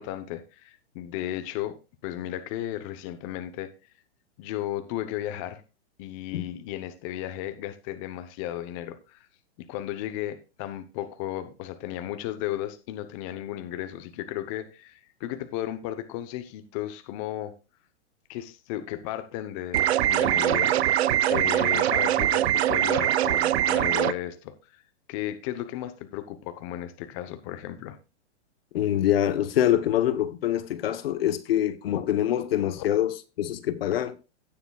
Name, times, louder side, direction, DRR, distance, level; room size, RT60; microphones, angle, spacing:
voice 1, 0.0-1.8 2.0-3.7 4.4-5.6 6.0-9.3 9.6-17.5 18.3-20.7 21.3-24.8 25.1-28.0 32.8-32.9, left 13 dB, 30° left, 0.8 m, -34 dB
sound 1, 19.7-24.1, right 12 dB, 65° right, 0.6 m, -23 dB
voice 2, 28.7-34.2, left 11 dB, 55° left, 1.0 m, -25 dB
17.0 x 6.9 x 2.3 m
hypercardioid pair, 155°, 35 cm